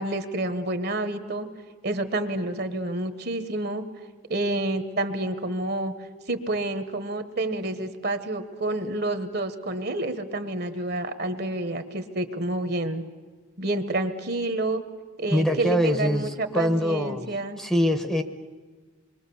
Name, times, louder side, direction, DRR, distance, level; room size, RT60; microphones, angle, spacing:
voice 1, 0.0-1.5 1.8-3.8 4.3-5.9 6.3-13.0 13.6-14.8 15.2-17.6, right 2 dB, 50° right, 9 dB, 1.2 m, -29 dB
voice 2, 15.3-17.3 17.6-18.2, equal, 5° left, 7 dB, 0.9 m, -24 dB
26.5 x 22.5 x 7.0 m, 1.4 s
head